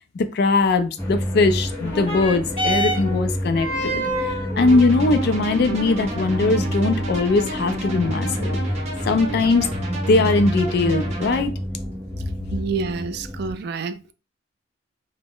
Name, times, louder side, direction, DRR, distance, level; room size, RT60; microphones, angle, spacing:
voice 1, 0.1-8.6 9.0-9.7 10.1-11.6, left 3 dB, 55° left, 0.3 m, -20 dB
sound 1, 1.0-13.5, equal, 15° left, 0.7 m, -29 dB
sound 2, 1.8-10.7 11.6-11.7, right 1 dB, 35° left, 1.3 m, -31 dB
sound 3, 4.6-11.4, right 1 dB, 35° right, 0.7 m, -31 dB
voice 2, 12.5-14.1, right 4 dB, 60° right, 0.3 m, -28 dB
2.3 x 2.1 x 3.5 m
head